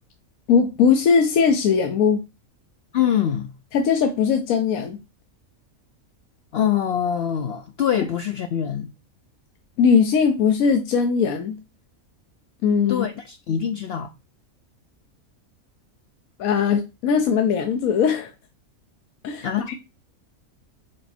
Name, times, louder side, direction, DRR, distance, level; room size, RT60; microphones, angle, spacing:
voice 1, 0.5-2.2 3.7-5.0 9.8-11.6 12.6-13.1 16.4-18.3 19.2-19.8, left 6 dB, 80° left, 1.1 m, -20 dB
voice 2, 2.9-3.5 6.5-8.9 12.9-14.1 19.4-19.7, left 9 dB, 65° left, 0.6 m, -24 dB
5.0 x 4.4 x 4.2 m
omnidirectional pair, 1.4 m